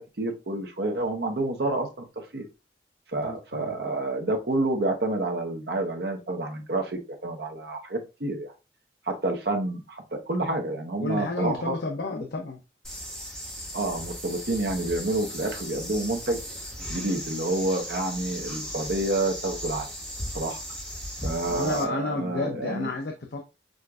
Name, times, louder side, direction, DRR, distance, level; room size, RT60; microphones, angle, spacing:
voice 1, 0.0-1.9 2.3-2.4 3.1-8.5 9.1-11.8 13.7-16.4 16.9-19.9 20.3-20.6 21.2-22.9, right 2 dB, 65° right, 0.8 m, -29 dB
voice 2, 3.2-3.7 11.0-12.6 21.1-23.4, left 3 dB, 75° left, 0.6 m, -31 dB
sound 1, 12.8-21.8, equal, 5° left, 1.2 m, -37 dB
6.2 x 2.5 x 2.3 m
head